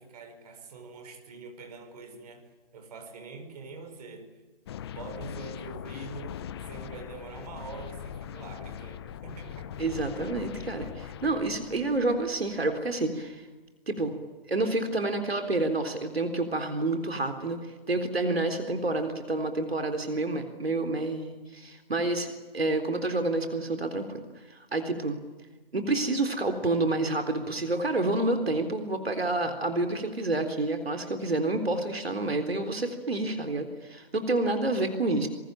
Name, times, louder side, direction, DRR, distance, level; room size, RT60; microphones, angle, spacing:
voice 1, 0.0-4.4 4.9-9.8, right 4 dB, 40° right, 5.5 m, -44 dB
sound 1, 4.7-12.8, left 9 dB, 25° left, 0.9 m, -41 dB
voice 2, 9.8-13.5 13.9-14.2 14.5-17.6 17.9-22.3 22.5-24.2 24.5-25.2 25.7-35.3, right 2 dB, 80° right, 3.8 m, -28 dB
28.0 x 23.0 x 9.0 m
figure-of-eight pair, 145°, 30 cm